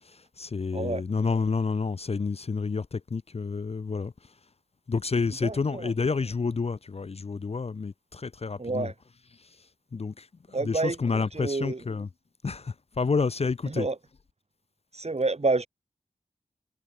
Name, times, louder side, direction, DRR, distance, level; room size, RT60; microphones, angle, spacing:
voice 1, 0.0-4.3 4.9-8.9 9.4-9.7 9.9-10.3 10.7-12.1 12.4-13.9, left 4 dB, 45° left, 0.5 m, -29 dB
voice 2, 0.7-1.0 5.4-5.9 8.6-8.9 10.5-11.8 13.7-14.0 14.9-15.7, right 3 dB, 45° right, 3.4 m, -29 dB
cardioid pair, 50°, 15 cm